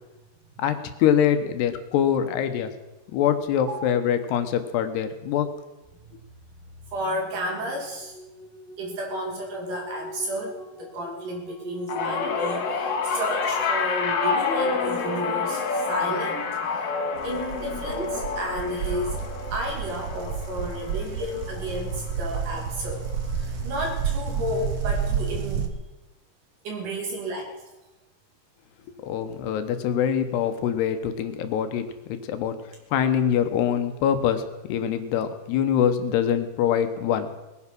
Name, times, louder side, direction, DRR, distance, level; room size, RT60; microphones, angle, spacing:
voice 1, 0.6-2.7 3.1-5.5 29.0-32.6 32.9-34.4 34.7-37.3, left 9 dB, 85° left, 9 dB, 3.2 m, -24 dB
voice 2, 6.8-8.2 8.8-16.9 17.2-19.2 19.5-23.1 23.3-25.7 26.6-27.5, equal, 55° right, 1 dB, 4.2 m, -32 dB
sound 1, 7.8-15.0, left 1 dB, 5° left, 0.4 m, -43 dB
sound 2, 11.9-22.3 22.7-23.1 24.2-24.3, left 5 dB, 55° left, 2.5 m, -28 dB
sound 3, 17.2-25.7, right 6 dB, 90° right, 1.3 m, -30 dB
20.0 x 9.8 x 6.0 m, 1.0 s
omnidirectional pair, 4.7 m